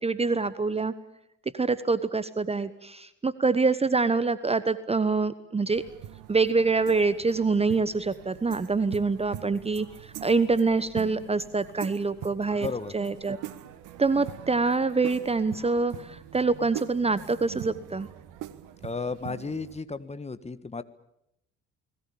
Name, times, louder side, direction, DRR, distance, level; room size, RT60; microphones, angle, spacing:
voice 1, 0.0-0.9 1.5-5.8 6.3-12.7 12.9-13.4 14.0-18.1, right 4 dB, 15° right, 16 dB, 1.1 m, -25 dB
sound 1, 5.7-19.8, right 12 dB, 55° right, 1.7 m, -43 dB
voice 2, 12.5-12.9 18.8-20.8, left 4 dB, 20° left, 12 dB, 1.5 m, -34 dB
29.5 x 21.0 x 7.1 m, 0.81 s
figure-of-eight pair, 55°, 36 cm